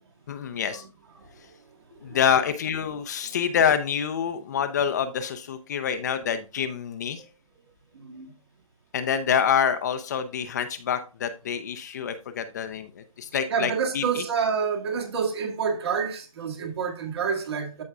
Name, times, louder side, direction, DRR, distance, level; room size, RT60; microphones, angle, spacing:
voice 1, 0.3-0.8 2.0-7.2 8.9-14.2, left 8 dB, 30° left, 0.6 m, -26 dB
voice 2, 7.9-8.3 13.5-17.8, right 6 dB, 45° right, 2.0 m, -28 dB
13.5 x 4.7 x 2.3 m
figure-of-eight pair, 150°, 18 cm